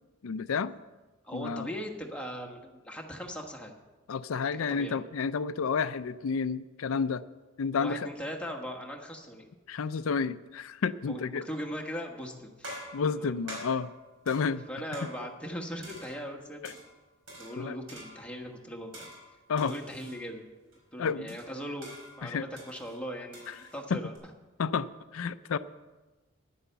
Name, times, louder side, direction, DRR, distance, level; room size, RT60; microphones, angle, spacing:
voice 1, 0.2-0.7 1.3-1.7 4.1-7.2 7.6-8.1 9.7-11.5 12.9-13.9 14.3-14.7 16.6-16.7 17.6-17.8 19.5-19.7 21.0-21.4 22.2-22.5 23.5-23.6 23.9-24.0 24.6-25.6, left 5 dB, 75° left, 14 dB, 0.4 m, -30 dB
voice 2, 1.2-3.7 4.5-5.0 7.8-9.5 11.1-12.7 13.2-13.3 14.7-16.7 17.4-19.1 19.6-20.4 20.9-24.1, equal, 5° left, 0 dB, 1.3 m, -39 dB
sound 1, 11.7-12.1 12.6-15.5 15.8-16.9 17.3-18.4 18.9-20.2 20.7-20.8 21.3-24.2, right 1 dB, 65° right, 4.4 m, -47 dB
10.0 x 9.9 x 6.9 m, 1.2 s
head